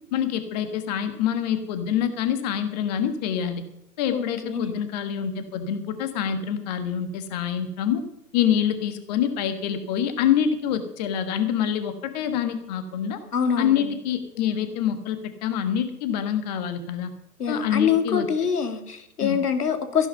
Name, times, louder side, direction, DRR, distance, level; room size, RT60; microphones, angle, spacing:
voice 1, 0.1-3.6 4.0-8.0 8.3-13.2 13.6-17.1 17.5-18.3 19.2-19.4, left 9 dB, 25° left, 9 dB, 1.5 m, -26 dB
voice 2, 4.1-4.8 13.3-13.8 17.4-20.1, left 7 dB, 70° left, 8 dB, 2.5 m, -25 dB
14.5 x 11.5 x 5.5 m, 0.78 s
hypercardioid pair, 140°, 47 cm